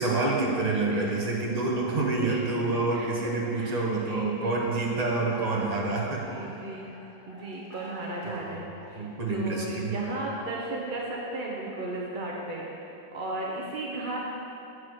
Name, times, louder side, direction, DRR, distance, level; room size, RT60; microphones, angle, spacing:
voice 1, 0.0-6.3 8.3-8.7 9.0-10.1, right 3 dB, 30° right, -3 dB, 0.8 m, -28 dB
voice 2, 3.5-4.7 6.2-6.9 7.3-8.6 8.9-14.2, right 2 dB, 70° right, -3 dB, 0.4 m, -35 dB
sound 1, 5.3-9.5, left 1 dB, 70° left, 2.4 m, -48 dB
8.5 x 4.8 x 6.2 m, 2.8 s
omnidirectional pair, 2.1 m